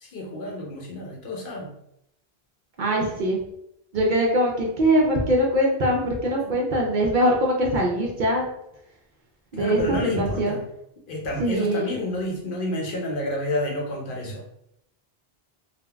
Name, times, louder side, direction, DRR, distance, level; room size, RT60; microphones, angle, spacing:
voice 1, 0.0-1.7 6.4-6.6 9.5-10.6 11.1-14.5, left 1 dB, 60° left, -1 dB, 0.8 m, -30 dB
voice 2, 2.8-3.4 3.9-8.5 9.5-10.6 11.4-11.9, right 1 dB, 60° right, -1 dB, 0.6 m, -22 dB
3.4 x 2.1 x 2.2 m, 0.78 s
omnidirectional pair, 1.0 m